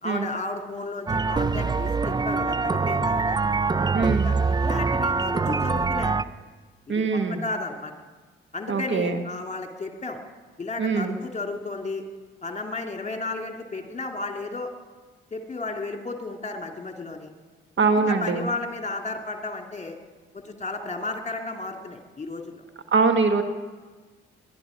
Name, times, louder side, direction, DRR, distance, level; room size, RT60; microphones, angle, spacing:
voice 1, 0.0-3.4 4.1-6.2 6.9-7.9 8.5-10.2 10.6-12.0 12.4-14.7 15.3-17.3 17.8-20.0 20.3-22.6, left 3 dB, 25° left, 3 dB, 2.5 m, -33 dB
sound 1, 1.1-6.2, right 4 dB, 15° right, 0.5 m, -24 dB
voice 2, 3.9-4.3 6.9-7.4 8.7-9.2 10.8-11.2 17.8-18.5 22.9-23.4, right 4 dB, 40° right, 7 dB, 1.4 m, -22 dB
22.0 x 11.5 x 5.1 m, 1.3 s
hypercardioid pair, 40°, 29 cm